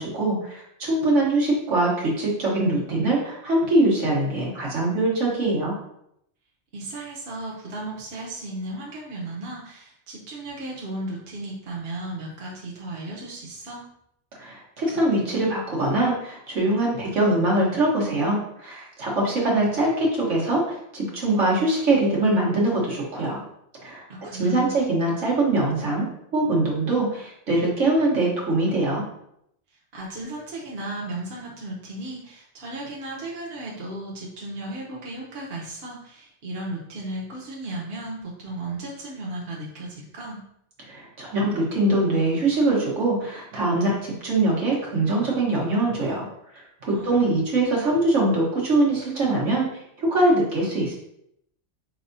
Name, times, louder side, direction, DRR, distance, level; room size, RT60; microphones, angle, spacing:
voice 1, 0.0-5.7 14.3-23.4 23.8-24.0 24.3-26.1 26.3-29.0 40.8-46.3 46.5-49.6 50.0-50.9, right 2 dB, 85° right, -3 dB, 1.5 m, -23 dB
voice 2, 6.7-13.9 24.1-24.7 29.9-40.4 46.8-47.4, right 2 dB, 60° right, -4 dB, 1.1 m, -35 dB
4.5 x 3.4 x 2.6 m, 0.75 s
omnidirectional pair, 1.2 m